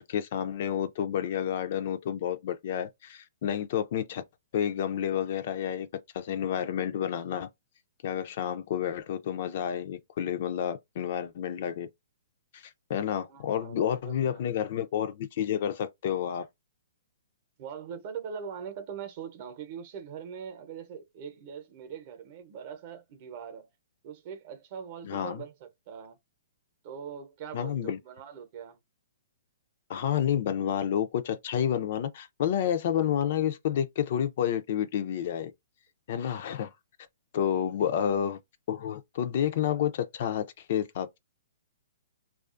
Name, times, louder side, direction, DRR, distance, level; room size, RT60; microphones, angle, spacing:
voice 1, 0.0-4.2 4.5-5.9 6.1-7.5 8.0-11.9 12.5-12.6 12.9-16.5 25.0-25.4 27.5-28.0 29.9-35.5 36.1-36.7 37.3-38.4 38.7-41.2, left 9 dB, 50° left, 0.4 m, -30 dB
voice 2, 13.3-14.4 17.6-23.7 24.0-26.2 26.8-28.8 37.4-37.9, right 7 dB, 40° right, 0.7 m, -42 dB
2.4 x 2.3 x 2.5 m
hypercardioid pair, 155°, 0 cm